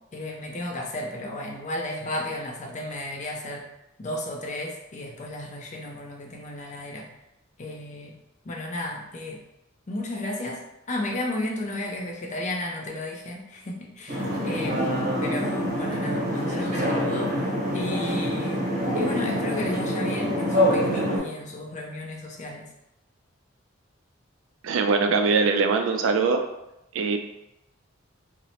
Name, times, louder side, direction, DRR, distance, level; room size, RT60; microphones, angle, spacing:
voice 1, 0.1-3.7 4.0-7.1 7.6-8.2 8.4-9.4 9.9-18.6 18.9-22.6, left 1 dB, 35° left, 0 dB, 0.5 m, -33 dB
sound 1, 14.1-21.2, equal, 40° right, 0.8 m, -25 dB
voice 2, 24.6-26.4 26.9-27.2, right 4 dB, 70° right, 6 dB, 0.3 m, -22 dB
2.7 x 2.1 x 2.8 m, 0.89 s
head